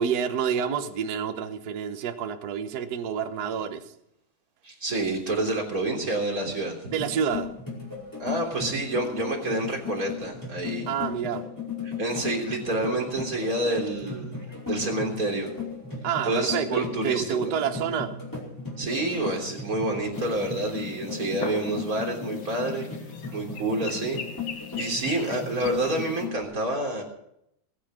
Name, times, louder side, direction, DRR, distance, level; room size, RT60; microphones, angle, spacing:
voice 1, 0.0-3.9 6.9-7.6 10.9-11.5 16.0-18.2, right 7 dB, 90° right, 0.8 m, -28 dB
voice 2, 4.6-6.9 8.2-10.9 11.8-14.4 14.7-15.5 16.2-17.6 18.8-22.9 23.3-24.2 24.8-27.0, right 2 dB, 30° right, 3.6 m, -28 dB
sound 1, 6.9-26.4, left 5 dB, 5° left, 4.8 m, -36 dB
sound 2, 20.1-26.3, left 6 dB, 50° left, 1.9 m, -41 dB
20.0 x 9.9 x 6.2 m
omnidirectional pair, 3.4 m